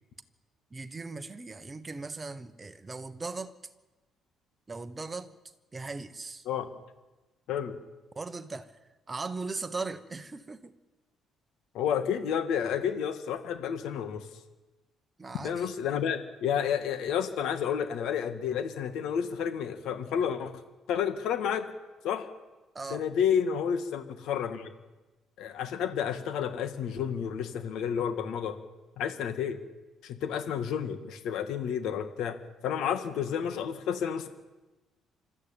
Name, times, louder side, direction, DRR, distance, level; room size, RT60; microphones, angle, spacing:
voice 1, 0.7-3.6 4.7-5.3 5.7-6.5 8.1-8.8 9.1-10.7 15.2-15.7 22.7-23.0, right 3 dB, 15° right, 1.1 m, -38 dB
voice 2, 11.7-14.3 15.4-20.5 20.9-21.7 22.0-22.3 22.9-24.7 25.4-28.6 29.0-29.6 30.0-34.3, left 8 dB, 75° left, 2.0 m, -30 dB
25.5 x 13.0 x 9.0 m
cardioid pair, 165°, 0 cm